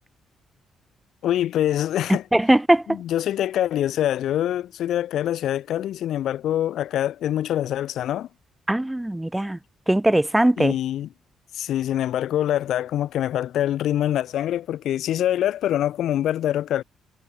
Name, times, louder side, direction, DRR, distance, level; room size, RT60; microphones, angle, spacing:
voice 1, 1.2-2.2 2.9-8.3 10.6-11.1 11.5-16.8, left 12 dB, 75° left, 1.6 m, -24 dB
voice 2, 2.3-2.8 8.7-9.6 9.9-10.7, right 1 dB, 10° right, 0.6 m, -20 dB
cardioid pair, 90°, 0 cm